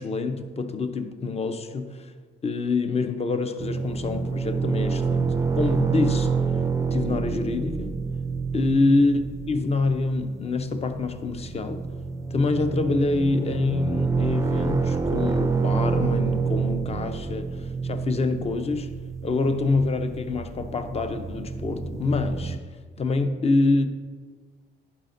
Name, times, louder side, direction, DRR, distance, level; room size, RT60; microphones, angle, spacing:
voice 1, 0.0-2.1 2.4-6.3 6.9-8.0 8.5-11.8 12.3-18.9 19.2-22.6 23.0-23.9, left 3 dB, 30° left, 9 dB, 0.6 m, -26 dB
sound 1, 3.6-22.6, right 5 dB, 15° right, 0.4 m, -28 dB
11.0 x 4.9 x 2.6 m, 1.5 s
cardioid pair, 90°, 20 cm